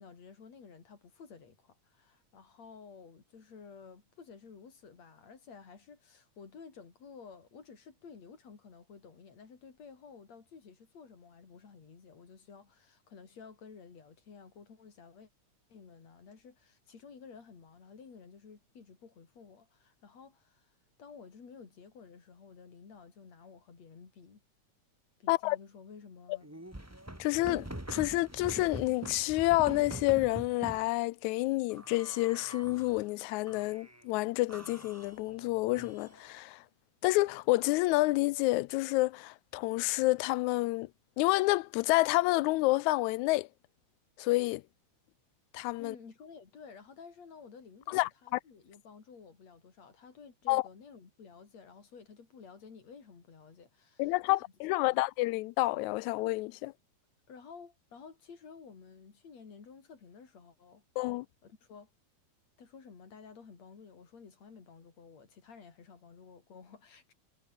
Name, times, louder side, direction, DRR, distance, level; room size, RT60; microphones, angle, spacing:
voice 1, 0.0-15.3 15.7-20.7 21.0-24.4 25.2-26.6 45.8-54.4 54.8-55.0 57.3-60.8 61.4-61.9 62.6-67.1, left 5 dB, 60° left, 5.0 m, -53 dB
sound 1, 26.4-30.9 31.7-33.0 33.5-34.0 34.5-36.3, right 1 dB, 5° right, 2.4 m, -44 dB
voice 2, 27.2-36.6 37.0-40.9 41.2-43.5 44.2-44.6 45.5-46.0 47.9-48.4 50.5-50.6 54.0-56.7 61.0-61.3, left 20 dB, 80° left, 1.9 m, -29 dB
omnidirectional pair, 3.4 m